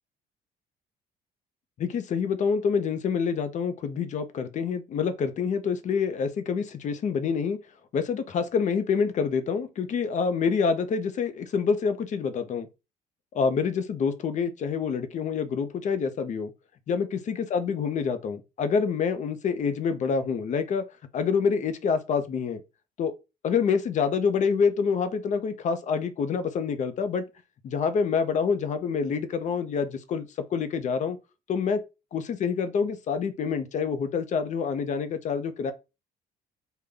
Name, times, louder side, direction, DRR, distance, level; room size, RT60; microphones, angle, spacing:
voice 1, 1.8-7.6 7.9-12.7 13.3-16.5 16.9-20.8 21.1-22.6 23.0-23.1 23.4-27.2 27.6-31.2 31.5-31.8 32.1-35.7, left 6 dB, 45° left, 0.6 m, -27 dB
3.7 x 2.2 x 3.4 m
cardioid pair, 110°, 17 cm